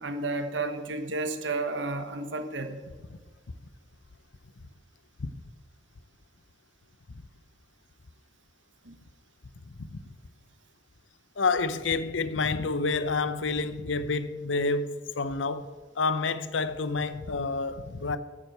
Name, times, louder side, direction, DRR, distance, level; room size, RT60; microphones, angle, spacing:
voice 1, 0.0-2.8 8.8-8.9, right 3 dB, 75° right, 1.2 m, -32 dB
voice 2, 9.8-10.1 11.4-15.7 15.9-18.2, left 4 dB, 85° left, 0.7 m, -29 dB
9.5 x 7.5 x 7.9 m
head